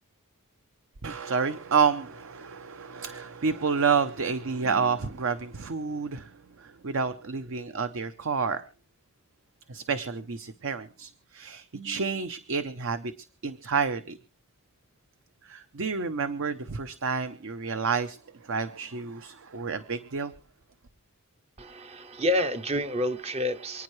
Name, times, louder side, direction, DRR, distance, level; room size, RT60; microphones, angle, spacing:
voice 1, 1.0-8.6 9.7-13.1 13.4-14.2 15.4-20.3, right 5 dB, 60° right, 11 dB, 0.7 m, -29 dB
voice 2, 21.6-23.8, left 1 dB, 30° right, 10 dB, 0.6 m, -28 dB
28.0 x 9.6 x 3.2 m, 0.40 s
head